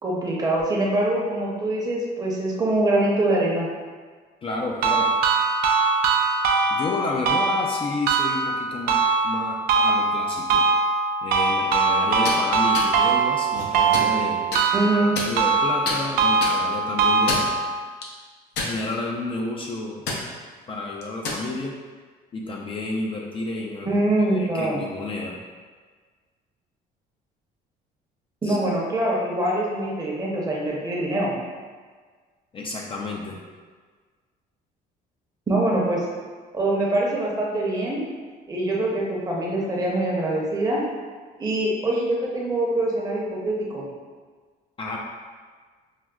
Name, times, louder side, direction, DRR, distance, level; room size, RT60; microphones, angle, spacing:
voice 1, 0.0-3.7 14.7-15.2 23.8-24.8 28.4-31.3 35.5-36.0 36.5-38.0 38.5-40.8 41.4-43.8, right 1 dB, 20° right, -4 dB, 0.7 m, -24 dB
voice 2, 4.4-5.1 6.7-9.0 9.2-10.6 11.2-14.4 14.9-17.5 18.6-20.2 20.7-21.7 22.3-25.4 28.4-28.6 32.5-33.4 44.8-45.0, left 2 dB, 30° left, -1 dB, 0.3 m, -31 dB
sound 1, 4.8-17.8, right 4 dB, 65° right, 0.4 m, -22 dB
sound 2, 12.1-12.4 12.7-12.9 13.5-14.1 14.5-14.6 15.2-15.6 15.9-16.0 16.4-16.6 17.1-17.5 18.0-18.1 18.6-19.1 19.4-19.6 20.1-20.2 21.0-21.4, left 3 dB, 80° left, 0.6 m, -28 dB
4.8 x 2.0 x 2.3 m, 1.5 s
cardioid pair, 110°, 17 cm